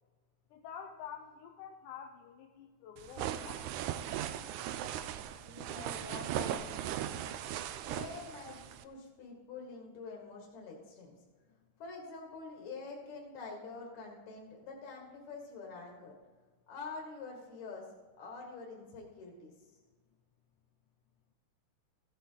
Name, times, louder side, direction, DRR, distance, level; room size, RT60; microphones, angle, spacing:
voice 1, 0.5-4.0 6.3-6.4, left 8 dB, 85° left, 3 dB, 2.2 m, -48 dB
sound 1, 3.0-8.8, right 11 dB, 80° right, 2.1 m, -38 dB
voice 2, 5.4-6.6 7.8-11.1 11.8-16.1 16.7-17.9 18.2-19.5, left 4 dB, 65° left, -1 dB, 3.0 m, -46 dB
15.0 x 8.6 x 3.9 m, 1.4 s
omnidirectional pair, 3.5 m